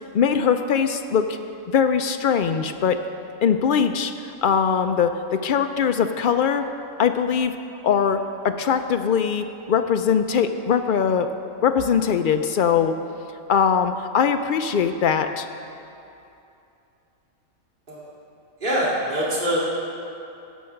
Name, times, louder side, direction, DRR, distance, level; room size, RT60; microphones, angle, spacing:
voice 1, 0.1-1.4 1.7-3.0 3.4-6.6 7.0-7.5 7.8-11.3 11.6-12.9 13.5-15.5, left 7 dB, 75° left, 8 dB, 0.4 m, -21 dB
voice 2, 18.6-19.6, equal, 40° right, -7 dB, 2.7 m, -24 dB
16.5 x 6.4 x 5.8 m, 2.7 s
omnidirectional pair, 1.4 m